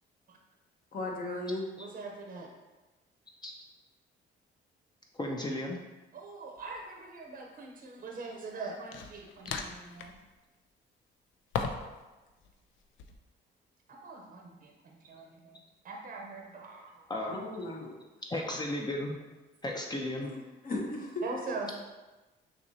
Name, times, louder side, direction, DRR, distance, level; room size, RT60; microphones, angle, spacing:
voice 1, 0.9-1.6 17.3-17.9 20.2-20.3 20.6-21.2, left 2 dB, 45° left, -1 dB, 1.1 m, -35 dB
voice 2, 1.8-2.5 6.1-10.1 14.0-14.7 15.0-15.6 15.8-17.1 21.2-21.7, right 3 dB, 45° right, 0 dB, 0.8 m, -42 dB
voice 3, 5.1-5.8 17.1-17.4 17.7-17.8 18.3-19.1 19.6-20.3, left 1 dB, 20° left, 0 dB, 0.6 m, -34 dB
sound 1, 6.6-6.8 8.9-10.2 11.5-12.0 12.3-13.2, left 5 dB, 80° left, 0.5 m, -37 dB
6.2 x 2.9 x 2.7 m, 1.1 s
cardioid pair, 90°, 20 cm